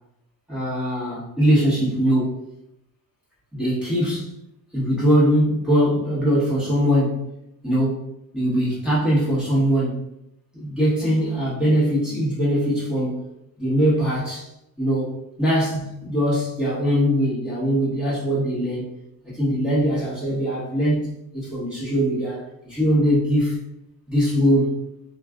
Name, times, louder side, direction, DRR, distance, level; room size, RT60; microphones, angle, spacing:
voice 1, 0.5-2.4 3.5-4.3 4.7-7.2 7.6-8.1 8.3-10.0 10.5-13.3 13.6-14.5 14.8-19.0 19.3-23.6 24.1-24.8, equal, 5° right, -9 dB, 1.1 m, -21 dB
2.4 x 2.4 x 3.4 m, 0.82 s
cardioid pair, 160°, 33 cm